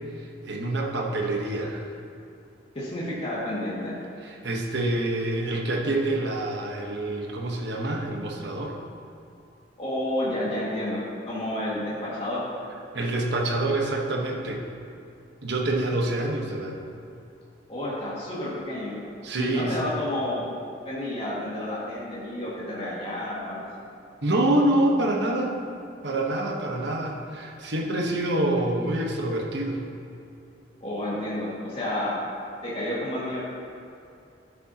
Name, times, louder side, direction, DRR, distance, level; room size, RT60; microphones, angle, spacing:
voice 1, 0.4-1.8 4.2-8.8 12.9-14.6 15.4-16.8 19.2-19.9 24.2-25.5 26.0-29.8, right 1 dB, 65° right, 0 dB, 1.1 m, -26 dB
voice 2, 2.7-3.9 9.8-11.0 11.3-12.4 17.7-19.0 19.3-20.4 20.8-23.8 30.8-32.1 32.6-33.4, left 1 dB, 35° left, -8 dB, 2.0 m, -30 dB
12.5 x 6.9 x 2.9 m, 2.6 s
head